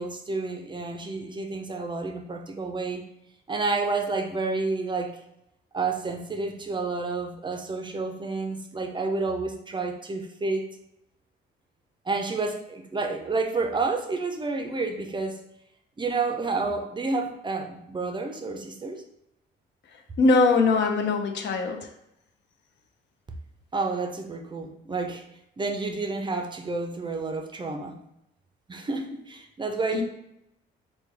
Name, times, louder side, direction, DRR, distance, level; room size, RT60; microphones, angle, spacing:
voice 1, 0.0-3.0 3.5-5.2 5.7-10.7 12.1-15.4 16.0-19.0 23.7-25.2 25.6-28.0 28.7-30.0, right 3 dB, 25° right, 4 dB, 0.4 m, -30 dB
voice 2, 19.9-21.9 29.9-30.0, left 3 dB, 65° left, 4 dB, 0.5 m, -22 dB
3.1 x 2.2 x 3.3 m, 0.82 s
cardioid pair, 90°, 20 cm